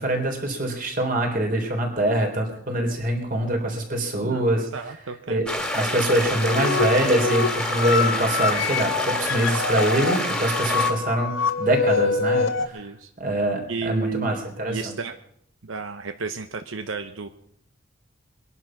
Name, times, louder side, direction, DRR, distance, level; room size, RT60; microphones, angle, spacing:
voice 1, 0.0-4.7 5.3-5.5 5.7-12.8 13.2-14.9, right 1 dB, 45° right, 2 dB, 3.7 m, -24 dB
voice 2, 4.2-5.4 12.7-13.1 13.7-14.4 14.7-15.1 15.6-17.3, right 4 dB, 85° right, 8 dB, 0.9 m, -32 dB
sound 1, 5.5-10.9, left 1 dB, 5° left, 2.2 m, -28 dB
sound 2, 6.1-12.7, left 4 dB, 85° left, 1.6 m, -26 dB
21.5 x 11.0 x 6.0 m, 0.70 s
head